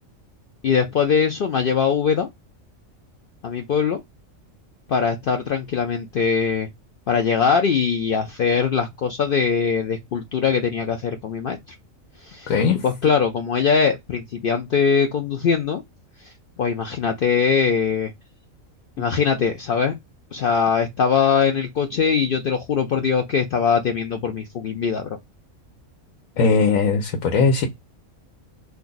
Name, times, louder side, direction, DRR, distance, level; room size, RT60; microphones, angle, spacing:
voice 1, 0.6-2.3 3.4-4.0 4.9-6.7 7.1-11.6 12.2-12.5 12.8-15.8 16.2-16.3 16.6-18.1 19.0-19.9 20.3-25.2, left 6 dB, 65° left, 0.5 m, -21 dB
voice 2, 12.5-12.8 26.4-27.7, left 4 dB, 85° left, 1.1 m, -19 dB
2.6 x 2.3 x 3.8 m
omnidirectional pair, 1.4 m